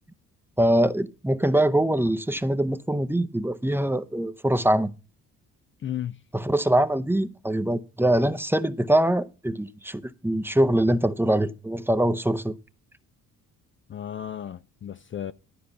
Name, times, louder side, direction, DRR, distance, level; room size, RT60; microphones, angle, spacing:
voice 1, 0.6-4.9 6.3-12.5, right 1 dB, 5° right, 0.7 m, -23 dB
voice 2, 5.8-6.2 13.9-15.3, left 10 dB, 35° left, 0.4 m, -34 dB
12.0 x 5.1 x 7.0 m
cardioid pair, 90°, 35 cm